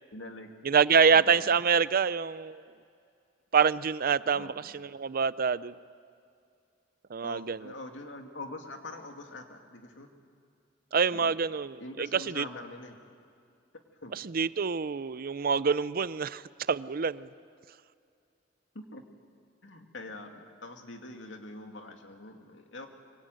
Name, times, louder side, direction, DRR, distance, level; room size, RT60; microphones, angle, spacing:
voice 1, 0.1-0.5 1.1-1.5 4.3-4.7 7.2-10.1 11.1-11.3 11.8-13.0 14.0-14.1 18.7-19.0 19.6-22.9, left 2 dB, 75° left, 4 dB, 2.4 m, -44 dB
voice 2, 0.6-2.6 3.5-5.8 7.1-7.7 10.9-12.4 14.1-16.4 16.7-17.3, right 6 dB, 50° right, 17 dB, 0.5 m, -26 dB
24.5 x 23.5 x 9.2 m, 2.4 s
head